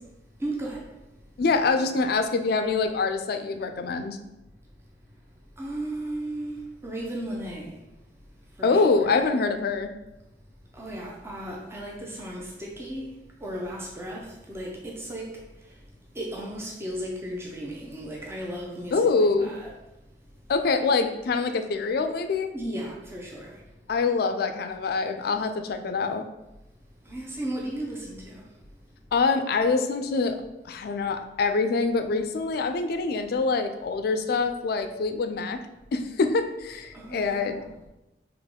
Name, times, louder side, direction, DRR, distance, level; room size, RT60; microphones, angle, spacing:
voice 1, 0.4-1.2 5.1-5.2 5.6-8.0 8.3-9.1 10.7-19.7 22.5-23.7 27.0-28.6 36.9-37.7, right 1 dB, 15° right, -3 dB, 0.6 m, -36 dB
voice 2, 1.4-4.2 8.6-9.9 18.9-19.5 20.5-22.5 23.9-26.3 29.1-30.4 30.7-35.6 35.9-37.6, left 4 dB, 60° left, 8 dB, 0.4 m, -25 dB
3.5 x 2.9 x 3.6 m, 0.96 s
head